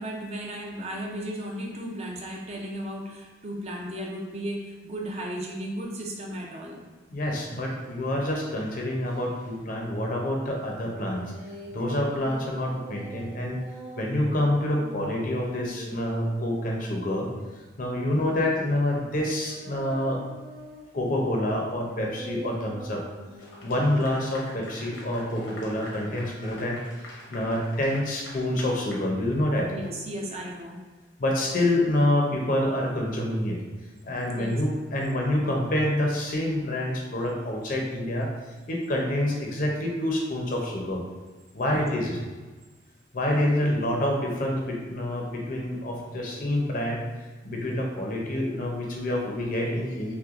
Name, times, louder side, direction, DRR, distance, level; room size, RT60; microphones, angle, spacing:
voice 1, 0.0-6.8 29.7-30.9 34.3-34.6 41.6-41.9, right 1 dB, 35° right, -1 dB, 0.5 m, -35 dB
voice 2, 7.1-11.2 11.7-13.6 14.0-17.3 17.8-20.2 20.9-23.0 23.6-29.7 31.2-33.6 34.0-38.3 38.7-41.0 41.5-42.2 43.1-47.0 47.4-50.1, left 1 dB, 45° left, 0 dB, 0.6 m, -27 dB
sound 1, 7.4-9.5 10.7-17.4 18.2-24.6 25.3-26.2, equal, 85° right, 1.1 m, -45 dB
Clapping / Applause, 23.4-29.7, left 1 dB, 75° left, 0.8 m, -46 dB
5.6 x 2.2 x 2.5 m, 1.3 s
head